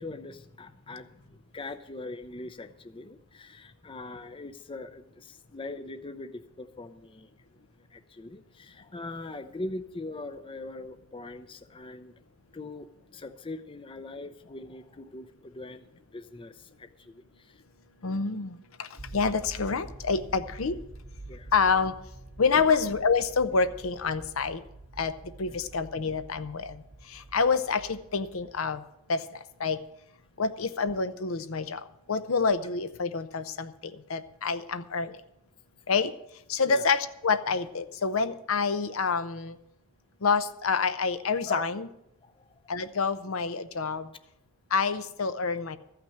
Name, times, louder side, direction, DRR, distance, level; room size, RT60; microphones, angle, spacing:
voice 1, 0.0-7.3 7.9-12.1 12.5-15.9 16.1-17.5 21.3-21.5 22.5-22.8 25.5-25.6 36.7-36.9 41.5-41.7 42.2-42.3, left 2 dB, 25° left, 10 dB, 0.6 m, -41 dB
voice 2, 18.0-18.9 19.1-20.8 21.5-21.9 22.4-24.6 25.0-25.1 25.4-26.8 27.1-28.8 29.1-29.2 29.6-29.8 30.4-31.8 32.1-35.2 35.9-36.1 36.5-39.6 40.2-41.9 42.7-44.1 44.7-45.8, left 5 dB, 75° left, 11 dB, 0.7 m, -27 dB
sound 1, 19.0-28.8, right 2 dB, 40° right, 1.0 m, -47 dB
14.0 x 5.9 x 9.1 m, 0.81 s
head